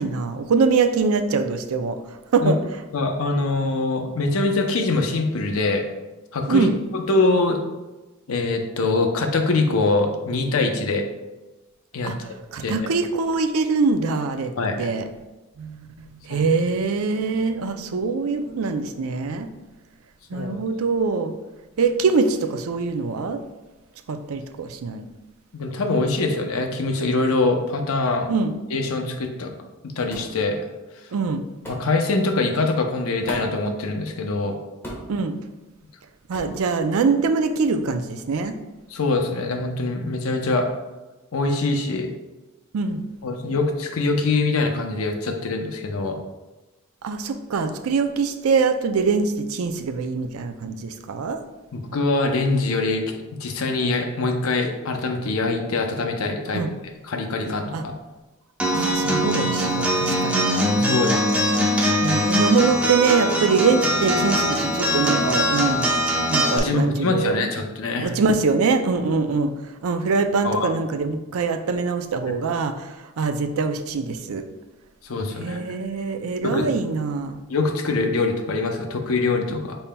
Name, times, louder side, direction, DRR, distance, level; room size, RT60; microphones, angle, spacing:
voice 1, 0.0-2.0 2.3-2.6 6.5-6.7 12.0-14.5 14.8-15.1 15.6-19.5 20.3-21.3 21.8-23.4 24.1-25.1 28.3-28.5 31.1-31.4 35.1-35.4 36.3-38.5 42.7-43.0 47.0-51.4 56.5-56.7 57.7-57.8 58.7-60.5 60.8-61.1 62.0-65.9 66.3-67.3 68.0-69.5 69.8-74.5 75.4-77.4, right 4 dB, 80° right, 8 dB, 0.4 m, -23 dB
voice 2, 2.9-5.9 6.3-6.7 6.9-7.6 8.3-11.0 11.9-12.1 12.6-12.8 14.6-14.8 16.3-16.4 20.3-20.6 25.5-28.3 28.7-29.5 30.0-30.6 31.7-34.6 38.9-40.7 41.3-42.1 43.2-46.2 51.7-56.6 57.0-57.9 60.9-61.3 61.6-61.8 66.5-68.1 70.4-70.7 75.0-75.6 76.4-76.7 77.5-79.8, left 3 dB, 75° left, 4 dB, 0.6 m, -23 dB
sound 1, 30.1-30.4 31.6-31.9 33.3-33.6 34.8-35.2 36.3-36.6, equal, 10° left, 1.3 m, -35 dB
Acoustic guitar, 58.6-66.6, equal, 5° right, 0.7 m, -22 dB
5.5 x 4.3 x 2.2 m, 1.1 s
head